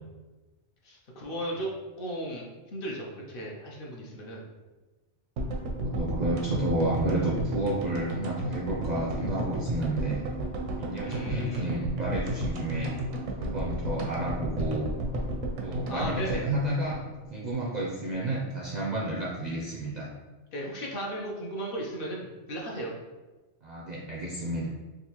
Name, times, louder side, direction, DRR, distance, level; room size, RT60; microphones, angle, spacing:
voice 1, 0.8-1.7 2.0-2.5 2.7-4.5 11.0-11.7 15.9-16.5 20.5-22.9, equal, 55° left, -2 dB, 0.7 m, -35 dB
sound 1, 5.4-17.6 17.8-17.9 18.1-18.2, right 1 dB, 85° right, 1.0 m, -33 dB
voice 2, 5.8-10.3 10.8-12.9 13.4-14.9 15.6-17.0 17.3-20.1 23.6-24.7, right 2 dB, 55° right, -4 dB, 0.5 m, -31 dB
3.7 x 2.5 x 2.8 m, 1.2 s
omnidirectional pair, 1.2 m